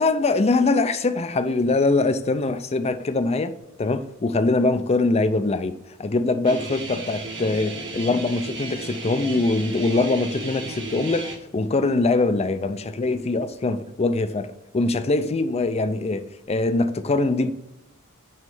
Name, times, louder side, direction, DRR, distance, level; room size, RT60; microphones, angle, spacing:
voice 1, 0.0-14.5 14.7-17.5, left 3 dB, 30° left, 0.5 m, -23 dB
Guitar, 6.4-11.4, right 3 dB, 55° right, 1.4 m, -34 dB
9.2 x 3.2 x 5.4 m
head